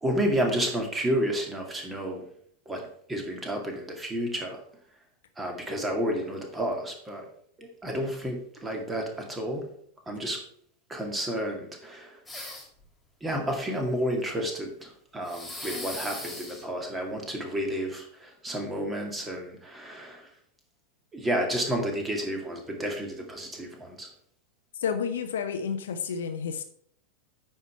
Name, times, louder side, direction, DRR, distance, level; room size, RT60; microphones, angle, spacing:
voice 1, 0.0-2.2 2.7-2.8 3.1-4.6 5.4-7.2 7.6-9.7 10.1-10.4 10.9-12.1 13.2-20.2 21.1-24.1, equal, 15° right, 2 dB, 2.3 m, -31 dB
sound 1, 12.3-12.8 15.2-16.6, left 1 dB, 10° left, 3.5 m, -38 dB
voice 2, 24.7-26.6, left 6 dB, 60° left, 9 dB, 0.8 m, -30 dB
9.1 x 5.8 x 4.7 m, 0.64 s
figure-of-eight pair, 90°, 0 cm